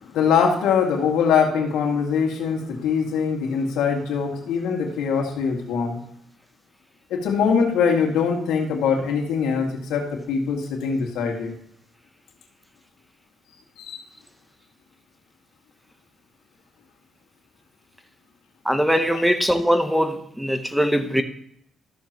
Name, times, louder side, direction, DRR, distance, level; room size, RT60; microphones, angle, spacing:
voice 1, 0.1-6.0 7.1-11.5 13.8-14.0 19.1-19.2, left 6 dB, 90° left, 2.0 m, -22 dB
voice 2, 18.6-21.2, equal, ahead, 0.9 m, -21 dB
13.5 x 7.1 x 3.0 m
cardioid pair, 90°, 0 cm